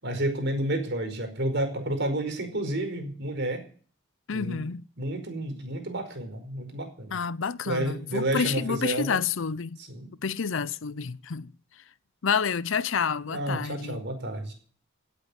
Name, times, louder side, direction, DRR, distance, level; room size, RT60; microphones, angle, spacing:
voice 1, 0.0-3.6 4.3-4.6 5.0-7.2 7.6-9.2 9.9-10.1 13.3-14.5, right 1 dB, 60° right, 4.9 m, -30 dB
voice 2, 4.3-4.8 7.1-9.8 10.2-11.5 12.2-14.0, left 6 dB, 65° left, 0.6 m, -29 dB
17.5 x 8.5 x 8.3 m
head